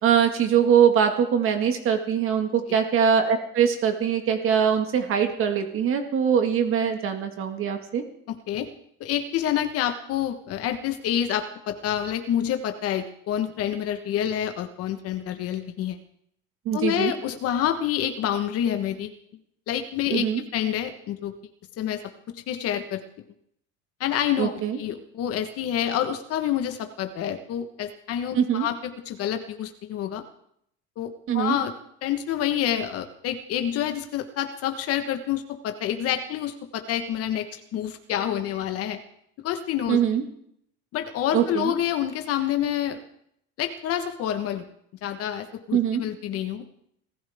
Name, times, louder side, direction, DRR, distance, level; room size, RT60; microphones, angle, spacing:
voice 1, 0.0-8.0 16.7-17.1 20.1-20.4 24.4-24.8 28.4-28.7 31.3-31.6 39.9-40.2 41.3-41.7 45.7-46.0, right 8 dB, 45° right, 5 dB, 1.9 m, -22 dB
voice 2, 8.3-8.7 9.0-16.0 16.7-19.1 19.7-20.2 20.5-21.3 21.8-22.0 22.3-23.0 24.0-30.2 31.0-31.7 32.0-39.0 39.4-40.0 40.9-43.0 43.6-44.7 45.0-46.6, left 10 dB, 50° left, 7 dB, 1.4 m, -28 dB
27.0 x 14.5 x 3.6 m, 0.70 s
cardioid pair, 135°, 30 cm